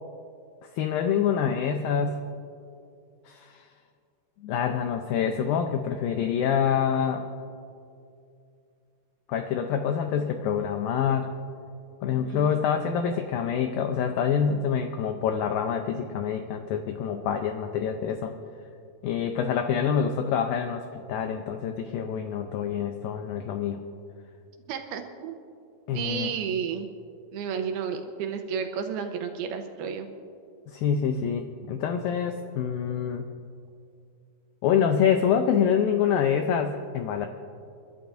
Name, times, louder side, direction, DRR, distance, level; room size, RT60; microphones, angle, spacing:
voice 1, 0.7-2.2 3.3-3.7 4.4-7.3 9.3-11.3 12.0-18.4 19.0-23.8 25.9-26.3 30.7-33.3 34.6-37.3, left 7 dB, 85° left, 5 dB, 2.0 m, -26 dB
voice 2, 12.3-12.6 24.7-25.4 25.9-26.9 27.3-30.1, right 7 dB, 80° right, 5 dB, 2.4 m, -32 dB
30.0 x 12.0 x 2.6 m, 2.5 s
omnidirectional pair, 4.8 m